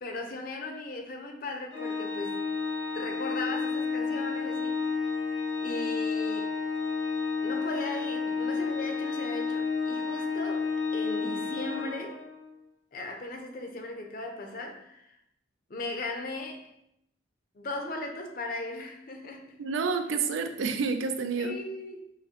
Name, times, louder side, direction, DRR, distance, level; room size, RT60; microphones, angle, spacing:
voice 1, 0.0-2.5 2.9-5.0 5.6-6.6 7.4-12.2 12.9-15.2 15.7-16.7 17.5-19.6 21.4-22.1, left 2 dB, 50° left, 3 dB, 0.5 m, -37 dB
Organ, 1.7-12.5, left 5 dB, 85° left, 0.8 m, -31 dB
voice 2, 19.6-21.6, right 4 dB, 85° right, 8 dB, 0.4 m, -29 dB
5.5 x 2.1 x 2.8 m, 0.79 s
head